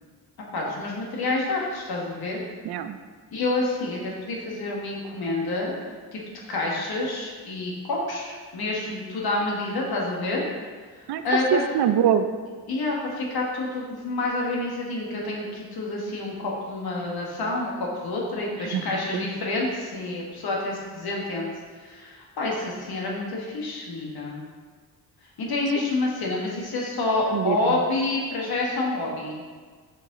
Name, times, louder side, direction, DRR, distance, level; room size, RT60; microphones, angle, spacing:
voice 1, 0.5-2.4 3.3-5.7 6.1-6.2 6.5-10.5 11.2-11.6 12.7-21.5 21.8-24.4 25.4-29.4, left 2 dB, 75° left, -2 dB, 1.5 m, -28 dB
voice 2, 2.6-3.0 11.1-11.2 11.5-12.3 18.7-18.9 19.1-19.2 27.3-27.8, right 9 dB, 85° right, 10 dB, 0.5 m, -23 dB
7.7 x 4.9 x 3.8 m, 1.5 s
cardioid pair, 85°, 37 cm